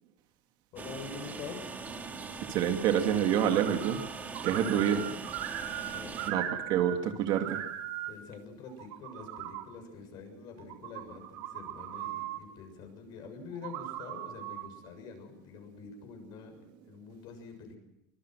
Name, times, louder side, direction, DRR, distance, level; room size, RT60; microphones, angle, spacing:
voice 1, 0.7-1.7 4.5-5.3 5.9-6.5 8.1-17.8, left 5 dB, 45° left, 5 dB, 7.0 m, -46 dB
Train, 0.8-6.3, right 4 dB, 15° right, 2.1 m, -41 dB
voice 2, 2.5-4.0 4.4-5.0 6.3-7.6, right 9 dB, 50° right, 6 dB, 2.0 m, -27 dB
sound 1, 3.4-4.1 4.3-7.0 7.2-8.1 8.7-9.6 10.6-12.4 13.5-14.7, right 12 dB, 75° right, 4.8 m, -39 dB
24.5 x 22.5 x 6.3 m, 0.81 s
cardioid pair, 165°, 10 cm